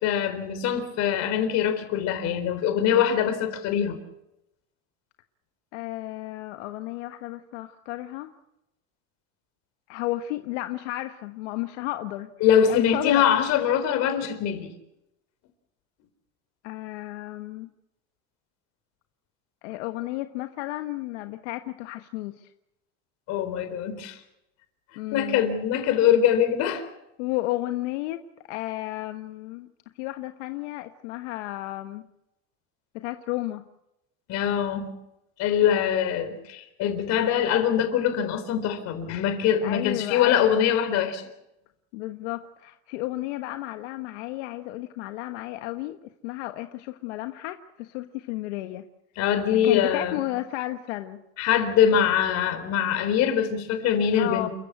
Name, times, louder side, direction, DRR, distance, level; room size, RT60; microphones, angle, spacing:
voice 1, 0.0-4.0 12.4-14.7 23.3-24.2 25.1-26.8 34.3-34.9 35.4-41.3 49.2-50.2 51.4-54.5, left 9 dB, 50° left, 9 dB, 4.0 m, -23 dB
voice 2, 5.7-8.3 9.9-12.3 12.7-13.4 16.6-17.7 19.6-22.5 25.0-25.4 27.2-29.7 30.0-32.1 32.9-33.6 39.6-40.7 41.9-48.8 49.6-51.2 54.2-54.5, left 16 dB, 85° left, 7 dB, 1.3 m, -33 dB
29.0 x 15.0 x 8.2 m, 0.87 s
cardioid pair, 155°, 34 cm